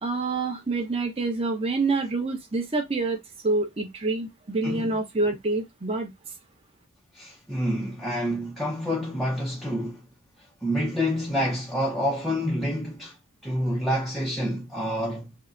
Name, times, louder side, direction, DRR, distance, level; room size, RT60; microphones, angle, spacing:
voice 1, 0.0-3.2 3.4-6.1, right 3 dB, 25° right, 0.8 m, -27 dB
voice 2, 4.6-5.0 7.1-10.1 10.6-13.2 13.4-15.4, equal, ahead, 0.6 m, -28 dB
4.7 x 2.1 x 2.5 m
head